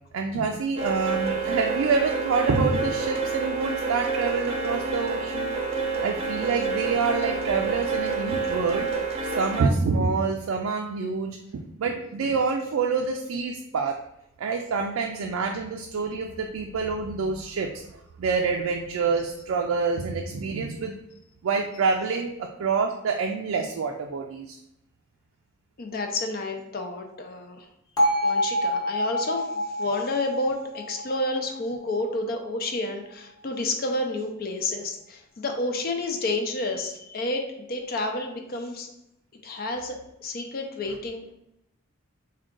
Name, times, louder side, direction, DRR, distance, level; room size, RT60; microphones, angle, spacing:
voice 1, 0.1-5.5 6.0-8.9 9.2-14.0 14.4-17.8 18.2-20.9 21.4-24.6, right 4 dB, 75° right, 3 dB, 0.3 m, -27 dB
sound 1, 0.8-9.6, right 4 dB, 30° right, 0.6 m, -28 dB
voice 2, 25.8-27.7 28.2-38.9 39.4-41.3, left 2 dB, 45° left, 4 dB, 0.4 m, -30 dB
Bell, 28.0-32.0, equal, 20° left, 0.8 m, -27 dB
3.6 x 2.3 x 3.7 m, 0.80 s
head